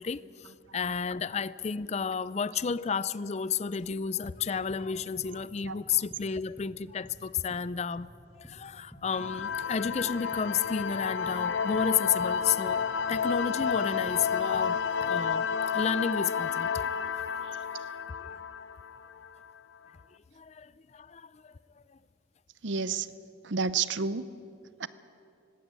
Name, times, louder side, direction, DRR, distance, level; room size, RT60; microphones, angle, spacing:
voice 1, 0.0-8.1 8.4-12.8 13.1-16.9 17.2-17.3 20.4-21.5, left 6 dB, 35° left, 18 dB, 0.4 m, -32 dB
sound 1, 3.9-4.0 4.2-4.9 5.2-5.8 6.1-6.3 6.6-6.8 7.0-7.7 8.0-9.1 9.4-10.1 10.3-11.0 11.3-11.5 11.7-12.4 12.7-13.3 13.6-13.8 14.1-14.3 14.5-15.2, equal, 5° left, 1.7 m, -51 dB
sound 2, 9.1-19.5, left 6 dB, 70° left, 0.7 m, -31 dB
voice 2, 22.6-23.1 23.4-24.3 24.8-24.9, right 5 dB, 70° right, 16 dB, 0.7 m, -31 dB
19.5 x 17.0 x 8.8 m, 2.6 s
head